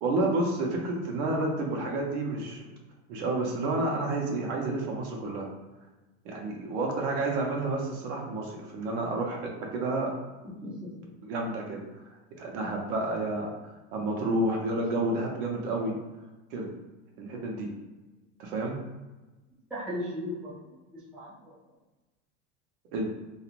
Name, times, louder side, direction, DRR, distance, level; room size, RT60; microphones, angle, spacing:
voice 1, 0.0-2.7 3.1-5.4 6.2-10.1 11.2-13.5 13.9-15.9 16.5-16.7 17.2-17.7 18.4-18.8 22.9-23.0, right 2 dB, 75° right, 0 dB, 0.8 m, -30 dB
voice 2, 10.4-11.1 19.7-21.5, left 1 dB, 5° right, -8 dB, 0.4 m, -38 dB
2.9 x 2.4 x 2.4 m, 1.1 s
supercardioid pair, 130°, 35 cm